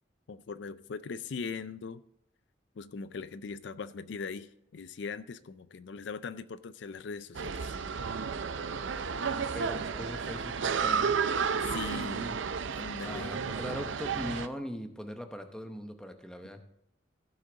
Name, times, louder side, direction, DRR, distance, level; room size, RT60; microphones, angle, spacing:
voice 1, 0.3-2.0 2.8-7.7 11.6-12.3 12.7-13.4, left 5 dB, 65° left, 14 dB, 0.4 m, -40 dB
sound 1, 7.3-14.5, right 6 dB, 75° right, 0.6 m, -32 dB
voice 2, 9.5-10.5 10.8-11.2 11.8-12.4 13.0-16.6, equal, 5° left, 6 dB, 0.8 m, -40 dB
15.0 x 6.5 x 3.9 m, 0.78 s
head